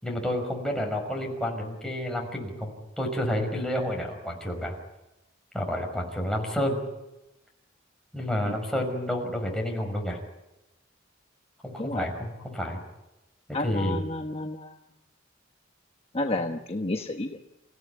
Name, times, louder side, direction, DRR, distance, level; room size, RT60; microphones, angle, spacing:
voice 1, 0.0-4.8 5.5-6.8 8.1-10.2 11.6-12.8 13.5-14.0 16.3-16.4, equal, 5° left, 1 dB, 5.6 m, -30 dB
voice 2, 13.5-14.7 16.1-17.4, left 2 dB, 30° left, 4 dB, 1.2 m, -31 dB
29.0 x 16.0 x 9.4 m, 0.97 s
head